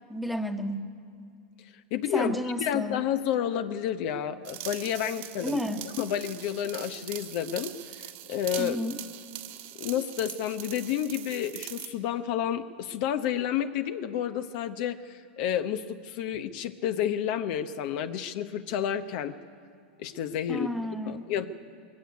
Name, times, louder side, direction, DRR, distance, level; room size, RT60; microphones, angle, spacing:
voice 1, 0.1-0.9 2.1-3.0 5.4-5.8 8.6-9.0 20.5-21.3, equal, ahead, 6 dB, 1.3 m, -31 dB
voice 2, 1.9-5.6 6.0-8.8 9.7-19.4 20.0-20.7 21.1-21.5, left 9 dB, 55° left, 9 dB, 1.0 m, -30 dB
sound 1, 4.4-11.9, right 14 dB, 50° right, 1.6 m, -42 dB
20.5 x 16.0 x 9.6 m, 2.4 s
hypercardioid pair, 120°, 6 cm